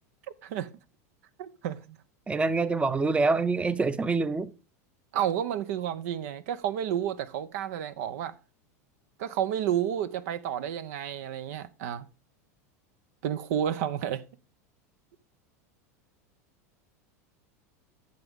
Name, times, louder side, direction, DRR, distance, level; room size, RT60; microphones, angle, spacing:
voice 1, 1.4-1.8 5.1-8.3 9.2-12.1 13.2-14.2, right 10 dB, 70° right, 0.8 m, -31 dB
voice 2, 2.3-4.5, right 3 dB, 15° right, 0.7 m, -25 dB
11.5 x 7.3 x 3.7 m
hypercardioid pair, 110°, 9 cm